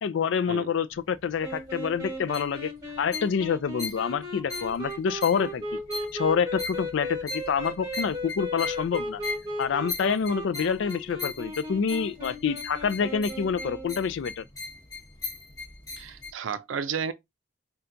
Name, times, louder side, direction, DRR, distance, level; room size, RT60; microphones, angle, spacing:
voice 1, 0.0-2.7 3.0-5.6 6.1-9.2 9.6-14.4, left 6 dB, 70° left, 0.3 m, -27 dB
sound 1, 0.9-16.3, left 3 dB, 20° left, 0.8 m, -40 dB
sound 2, 1.4-14.0, equal, 20° right, 1.1 m, -36 dB
voice 2, 16.0-17.1, right 6 dB, 75° right, 0.4 m, -32 dB
5.6 x 2.3 x 2.6 m
head